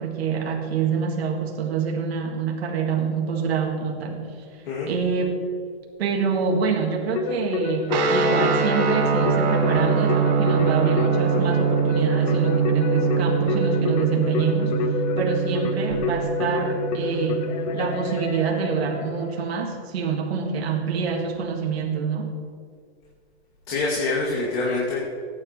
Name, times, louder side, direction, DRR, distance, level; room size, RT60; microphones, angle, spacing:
voice 1, 0.0-5.4 6.0-22.3, right 6 dB, 70° right, 1 dB, 1.8 m, -26 dB
Keyboard (musical), 7.2-19.6, left 5 dB, 40° left, 0.8 m, -28 dB
sound 1, 7.9-18.2, right 6 dB, 40° right, 1.4 m, -24 dB
voice 2, 23.7-25.0, left 3 dB, 60° left, -4 dB, 2.5 m, -25 dB
16.0 x 9.8 x 3.1 m, 2.1 s
hypercardioid pair, 160°, 33 cm